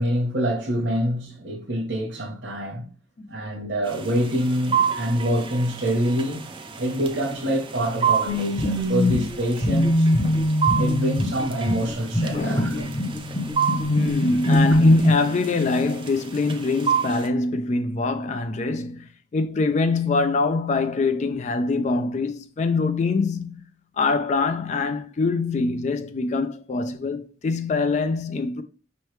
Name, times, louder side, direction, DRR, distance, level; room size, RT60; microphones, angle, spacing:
voice 1, 0.0-2.8 3.3-6.4 6.8-10.1 10.8-12.9, equal, 65° right, 1.0 m, -26 dB
sound 1, 3.9-17.3, right 7 dB, 25° right, 0.5 m, -30 dB
sound 2, 8.3-15.1, left 1 dB, 20° left, 0.7 m, -22 dB
voice 2, 12.3-13.0 13.9-23.7 24.0-28.6, left 3 dB, 40° left, 0.3 m, -24 dB
5.3 x 3.1 x 3.1 m
head